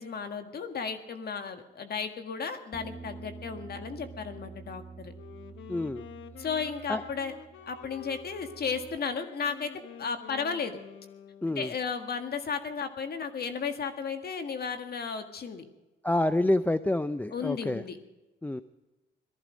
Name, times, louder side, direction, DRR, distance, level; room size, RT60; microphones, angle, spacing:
voice 1, 0.0-5.1 6.4-7.3 7.7-9.7 10.0-10.8 11.5-15.6 17.3-18.0, left 6 dB, 50° left, 7 dB, 1.7 m, -34 dB
Bass guitar, 2.7-9.0, right 4 dB, 20° right, 1.2 m, -48 dB
Wind instrument woodwind instrument, 5.1-11.9, left 9 dB, 75° left, 1.3 m, -48 dB
voice 2, 5.7-6.0 6.9-7.0 11.4-11.7 16.0-17.8 18.4-18.6, left 1 dB, 10° left, 12 dB, 0.5 m, -27 dB
19.0 x 14.0 x 5.1 m, 1.1 s
cardioid pair, 90°, 20 cm